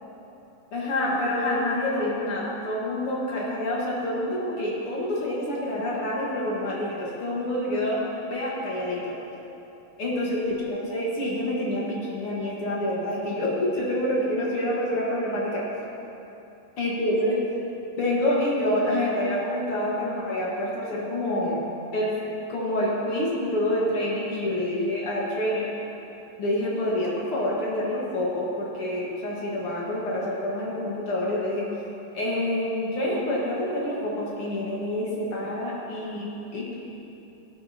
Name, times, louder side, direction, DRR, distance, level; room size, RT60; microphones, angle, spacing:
voice 1, 0.7-8.0 8.3-9.1 10.0-15.7 16.8-17.4 18.0-22.2 22.5-25.7 26.4-31.7 32.1-36.7, left 1 dB, 50° left, -5 dB, 1.9 m, -27 dB
18.5 x 8.6 x 2.9 m, 2.9 s
omnidirectional pair, 4.2 m